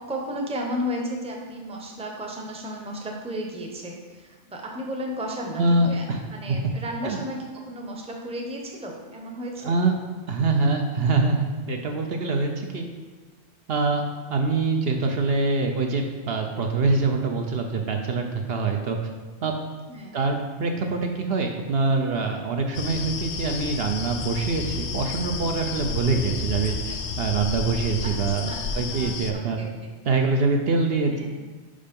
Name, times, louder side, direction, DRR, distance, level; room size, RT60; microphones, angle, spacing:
voice 1, 0.0-6.0 6.3-9.8 19.9-20.2 28.0-29.9 31.1-31.3, equal, 5° right, 0 dB, 0.7 m, -34 dB
voice 2, 5.6-6.2 6.5-6.6 7.0-7.2 9.6-9.9 10.3-12.9 13.7-14.0 14.3-19.0 19.4-19.5 20.1-28.5 28.7-29.6 30.1-31.3, right 3 dB, 65° right, 3 dB, 0.8 m, -24 dB
sound 1, 22.7-29.3, left 5 dB, 70° left, 0.9 m, -31 dB
5.4 x 5.2 x 5.2 m, 1.3 s
omnidirectional pair, 1.2 m